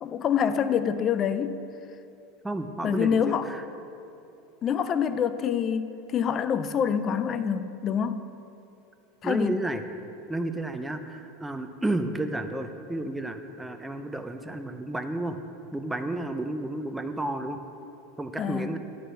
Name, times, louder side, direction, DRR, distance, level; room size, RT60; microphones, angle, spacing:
voice 1, 0.0-1.6 2.8-3.5 4.6-8.3 9.2-9.6 18.4-18.8, left 7 dB, 35° left, 12 dB, 0.4 m, -26 dB
voice 2, 2.4-3.6 9.2-9.8 10.3-15.4 15.7-17.6 18.2-18.8, right 2 dB, 10° right, 7 dB, 0.6 m, -31 dB
9.8 x 5.0 x 5.7 m, 2.8 s
supercardioid pair, 105°, 0 cm